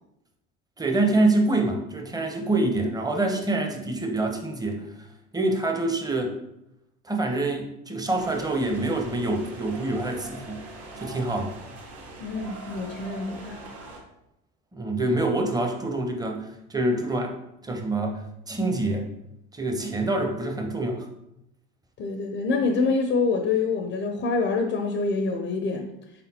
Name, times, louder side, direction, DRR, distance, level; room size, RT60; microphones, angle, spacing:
voice 1, 0.8-4.8 5.3-6.3 7.0-10.6 11.0-11.5 14.7-17.3 17.6-18.2 18.5-19.1 19.5-21.1, right 2 dB, 15° right, 2 dB, 0.7 m, -26 dB
sound 1, 8.2-14.0, right 2 dB, 55° right, 1.3 m, -42 dB
voice 2, 12.2-13.6 22.0-25.9, left 4 dB, 40° left, 4 dB, 0.5 m, -26 dB
4.1 x 3.6 x 2.8 m, 0.85 s
supercardioid pair, 80°, 30 cm